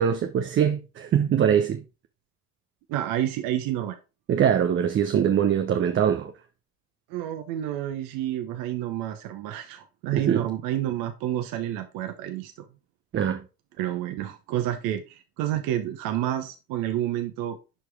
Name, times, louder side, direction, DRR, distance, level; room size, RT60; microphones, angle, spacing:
voice 1, 0.0-1.8 4.3-6.3 10.1-10.4 13.1-13.4, right 8 dB, 25° right, 0.8 m, -22 dB
voice 2, 2.9-4.0 7.1-12.5 13.8-17.6, right 12 dB, 45° right, 1.2 m, -29 dB
11.5 x 4.7 x 3.5 m
figure-of-eight pair, 70°, 45 cm